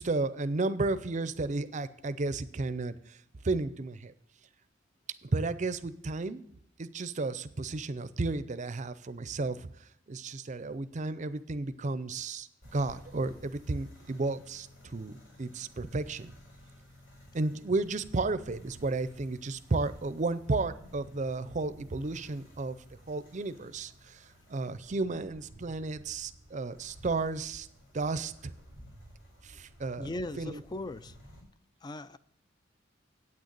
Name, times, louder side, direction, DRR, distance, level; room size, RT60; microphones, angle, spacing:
voice 1, 0.0-3.2 3.4-4.1 5.2-6.4 6.8-9.7 10.1-14.7 14.9-16.3 17.3-22.8 23.1-24.2 24.5-27.7 27.9-28.5 29.4-30.1 30.4-30.6, right 3 dB, 40° right, 0.5 m, -33 dB
sound 1, 12.6-31.4, equal, 85° left, 4.9 m, -54 dB
voice 2, 30.0-31.2 31.8-32.2, left 1 dB, 20° left, 0.3 m, -38 dB
8.7 x 6.5 x 8.6 m
head